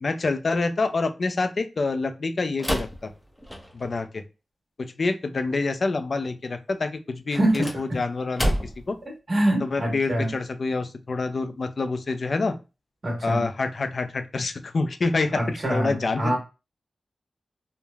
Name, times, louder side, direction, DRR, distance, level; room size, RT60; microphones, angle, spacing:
voice 1, 0.0-3.1 3.7-4.2 4.8-8.5 8.9-9.0 9.6-12.6 13.2-16.4, left 3 dB, 60° left, 9 dB, 0.4 m, -27 dB
sound 1, 2.6-4.0 7.3-9.0, equal, 5° left, 0.6 m, -29 dB
voice 2, 7.3-8.0 9.3-10.3 13.0-13.4 15.3-16.4, right 1 dB, 55° right, 0 dB, 1.2 m, -25 dB
3.1 x 2.1 x 2.3 m, 0.29 s
cardioid pair, 55°, 0 cm